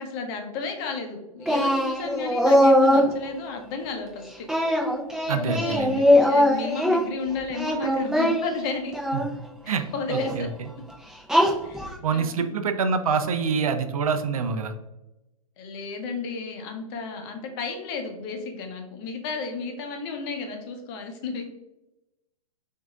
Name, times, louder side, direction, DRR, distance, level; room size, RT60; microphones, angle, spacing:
voice 1, 0.0-4.5 5.2-8.9 9.6-10.5 11.6-12.5 15.6-21.4, left 4 dB, 40° left, 4 dB, 0.9 m, -33 dB
Singing, 1.5-3.1 4.5-7.0 7.5-9.3 10.1-10.3 11.3-11.9, left 1 dB, 5° right, 0.7 m, -21 dB
voice 2, 5.3-6.0 9.1-9.2 9.7-10.7 12.0-14.8, right 5 dB, 75° right, 8 dB, 0.6 m, -26 dB
6.0 x 2.8 x 2.4 m, 0.97 s
hypercardioid pair, 115°, 19 cm